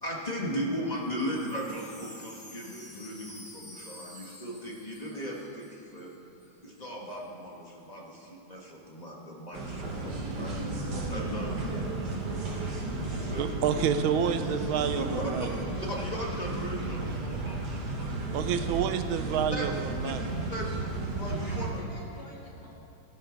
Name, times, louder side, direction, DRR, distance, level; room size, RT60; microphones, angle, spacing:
voice 1, 0.0-6.1 6.6-13.8 14.9-15.2 15.8-18.3 19.5-19.6 20.0-20.1 20.5-20.7 21.2-21.8, equal, 20° left, -2 dB, 1.4 m, -38 dB
Wind chime, 0.9-6.2 6.4-6.5 6.7-7.2, equal, 5° left, 1.7 m, -50 dB
sound 1, 9.5-21.7, right 2 dB, 55° right, 1.9 m, -33 dB
voice 2, 13.4-15.5 18.3-20.2, right 8 dB, 85° right, 9 dB, 1.4 m, -29 dB
voice 3, 20.2-20.5 21.3-22.7, left 1 dB, 45° left, -5 dB, 2.9 m, -50 dB
16.5 x 12.0 x 3.9 m, 2.8 s
omnidirectional pair, 2.2 m